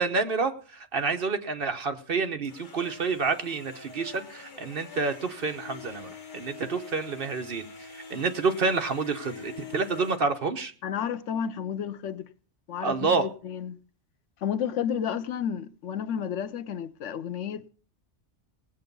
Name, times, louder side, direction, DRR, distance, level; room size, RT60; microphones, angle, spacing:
voice 1, 0.0-10.7 12.8-13.3, right 4 dB, 55° right, 1.2 m, -28 dB
sound 1, 2.4-10.2, left 5 dB, 45° left, 1.2 m, -45 dB
voice 2, 10.8-12.2 12.7-13.8 14.4-17.7, left 8 dB, 85° left, 1.1 m, -31 dB
18.0 x 8.1 x 5.3 m
omnidirectional pair, 1.2 m